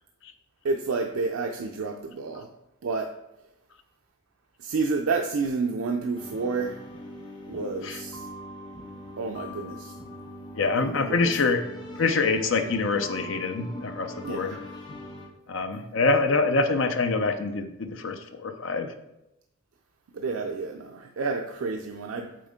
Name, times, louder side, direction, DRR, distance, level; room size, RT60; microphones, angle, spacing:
voice 1, 0.6-2.5 2.8-3.1 4.6-6.8 7.5-8.3 9.2-10.0 10.7-11.4 14.2-14.7 20.1-22.3, right 4 dB, 80° right, 3 dB, 0.5 m, -30 dB
sound 1, 6.1-15.3, left 1 dB, 20° left, 1.1 m, -41 dB
voice 2, 10.5-14.6 15.5-18.9, left 3 dB, 65° left, 7 dB, 0.6 m, -25 dB
7.6 x 4.4 x 3.6 m, 0.89 s
head